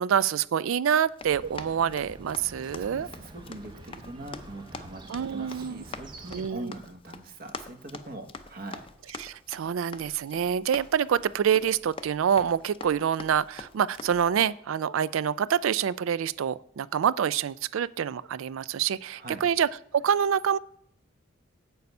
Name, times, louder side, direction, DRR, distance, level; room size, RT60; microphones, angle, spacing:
voice 1, 0.0-3.1 5.1-5.8 6.3-6.7 9.2-20.6, right 8 dB, 85° right, 19 dB, 0.4 m, -26 dB
Run, 0.8-14.5, left 4 dB, 25° left, 0.5 m, -45 dB
Chirp tweet, 1.3-6.5, right 2 dB, 20° right, 0.7 m, -47 dB
voice 2, 2.6-5.0 5.3-8.9 19.2-19.4, right 1 dB, 45° right, 6 dB, 1.2 m, -42 dB
8.1 x 6.8 x 5.4 m, 0.67 s
head